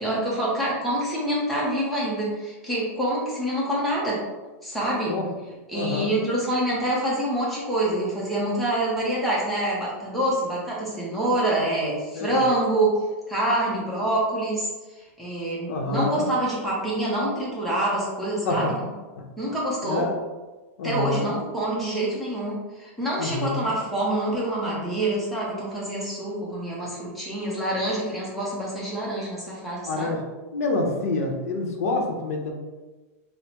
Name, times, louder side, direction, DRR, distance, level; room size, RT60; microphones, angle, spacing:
voice 1, 0.0-4.2 4.6-5.1 5.7-13.0 13.3-14.7 15.2-18.8 19.4-20.0 20.8-30.1, right 1 dB, ahead, -7 dB, 0.6 m, -26 dB
voice 2, 5.7-6.1 12.1-12.4 15.7-16.2 18.4-18.7 19.2-19.3 19.8-20.1 20.8-21.3 23.2-23.7 29.9-30.2 30.5-32.5, left 2 dB, 75° left, 2 dB, 0.7 m, -27 dB
5.3 x 2.0 x 2.9 m, 1.2 s
supercardioid pair, 175°, 8 cm